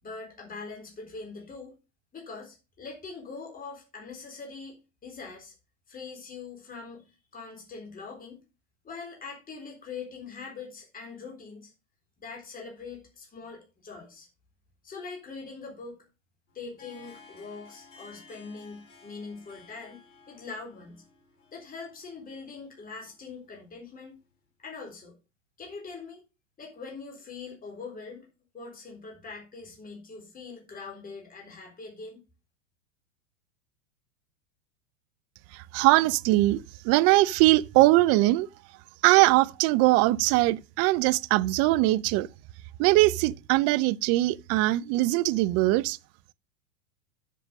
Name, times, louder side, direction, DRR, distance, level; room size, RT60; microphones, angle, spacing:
voice 1, 0.0-1.7 2.1-4.8 5.0-5.5 5.9-8.4 8.8-11.7 12.2-14.3 14.8-16.0 16.5-20.0 20.3-21.0 21.5-24.2 24.6-25.1 25.6-26.2 26.6-28.3 28.5-32.2, left 4 dB, 20° left, 3.9 m, -42 dB
Harp, 16.5-24.2, left 4 dB, 75° left, 4.8 m, -55 dB
voice 2, 35.5-38.5 39.0-42.3 42.8-46.0, right 19 dB, 40° right, 0.5 m, -21 dB
7.5 x 6.8 x 6.3 m
hypercardioid pair, 105°, 38 cm